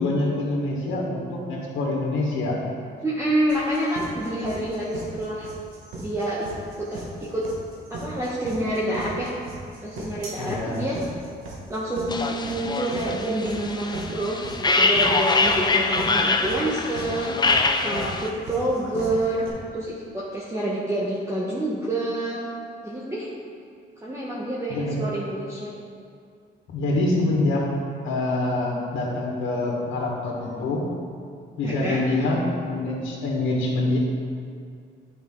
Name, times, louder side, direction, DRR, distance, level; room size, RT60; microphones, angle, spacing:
voice 1, 0.0-2.6 10.4-10.8 24.7-25.1 26.7-27.7 28.0-30.8 31.6-34.0, left 2 dB, 75° left, -3 dB, 1.7 m, -25 dB
voice 2, 3.0-5.5 6.0-6.5 6.8-7.5 7.9-9.3 9.8-11.0 11.7-17.4 17.8-19.5 19.7-22.4 22.8-23.3 24.0-25.7 31.6-32.0, right 1 dB, 15° right, -6 dB, 1.2 m, -27 dB
sound 1, 3.5-19.5, right 2 dB, 90° right, 1.5 m, -38 dB
sound 2, 12.1-18.3, left 3 dB, 20° left, 0.5 m, -24 dB
10.5 x 5.2 x 3.8 m, 2.3 s
cardioid pair, 90°, 20 cm